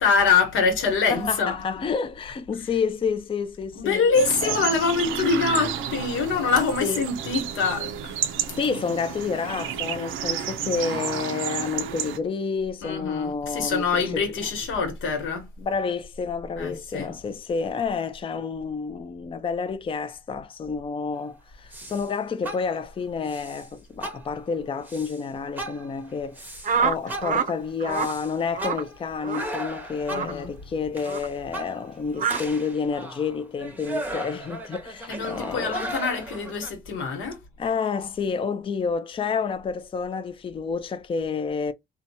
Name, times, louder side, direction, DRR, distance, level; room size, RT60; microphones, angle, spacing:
voice 1, 0.0-1.5 3.8-8.1 12.8-15.5 16.6-17.1 30.1-30.5 35.1-37.4, left 5 dB, 80° left, 1.2 m, -24 dB
voice 2, 1.1-4.1 4.4-4.6 6.8-7.0 8.6-14.5 15.6-26.4 26.8-35.8 37.6-41.7, left 5 dB, 25° left, 0.4 m, -29 dB
sound 1, 4.1-12.2, right 9 dB, 90° right, 0.5 m, -31 dB
sound 2, 21.7-22.1 22.4-22.9 23.3-23.7 24.0-24.5 24.9-25.2 25.6-26.8 27.1-30.5 30.9-32.0 32.3-36.7, right 1 dB, 10° right, 0.8 m, -36 dB
sound 3, 26.6-27.5 27.8-28.1 28.5-28.8 29.2-29.5 30.1-30.3 31.0-31.3 32.2-32.4, right 6 dB, 40° right, 0.5 m, -26 dB
2.8 x 2.2 x 2.7 m
cardioid pair, 90°, 20 cm